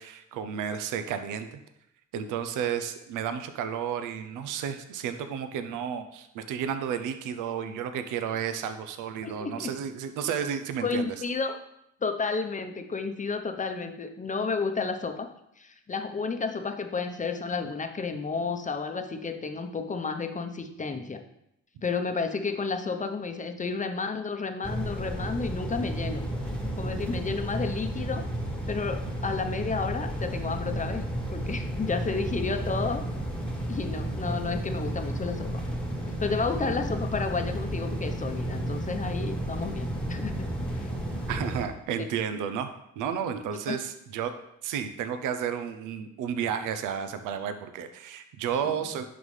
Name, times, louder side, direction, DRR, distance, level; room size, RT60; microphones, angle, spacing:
voice 1, 0.0-1.6 2.1-11.1 41.3-44.3 44.6-49.0, right 8 dB, 90° right, 9 dB, 0.6 m, -32 dB
voice 2, 9.2-9.7 10.8-11.5 12.0-15.3 15.6-21.2 21.8-26.2 26.8-28.2 28.7-33.0 33.7-35.6 36.2-40.5 40.7-40.9 43.7-43.8 48.6-48.8, left 4 dB, 25° left, 6 dB, 0.7 m, -31 dB
sound 1, 24.6-41.7, right 1 dB, 5° left, 1.3 m, -32 dB
10.5 x 3.9 x 3.2 m, 0.80 s
cardioid pair, 90°, 30 cm